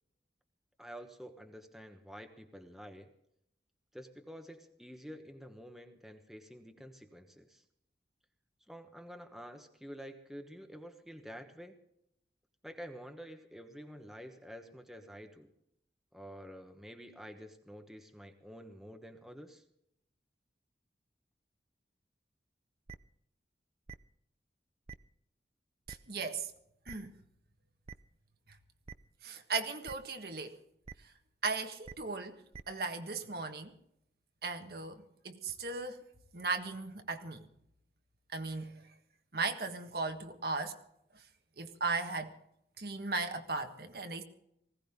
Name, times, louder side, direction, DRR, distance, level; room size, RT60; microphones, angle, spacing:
voice 1, 0.8-3.1 3.9-7.6 8.7-11.7 12.6-15.5 16.1-19.6, equal, ahead, 5 dB, 1.2 m, -49 dB
sound 1, 22.9-23.0 23.9-24.0 24.9-25.0 25.9-26.0 26.9-27.0 27.9-28.0 28.9-29.0 29.9-30.0 30.8-30.9 31.8-31.9 32.5-32.6, right 5 dB, 35° right, 0.5 m, -46 dB
voice 2, 25.9-26.5 26.9-27.1 29.2-30.6 31.4-32.4 32.7-33.7 34.4-36.0 36.3-37.5 38.3-38.8 39.3-40.7 41.6-42.4 42.8-44.2, right 4 dB, 60° right, 6 dB, 1.5 m, -37 dB
20.0 x 16.5 x 3.7 m, 0.77 s
head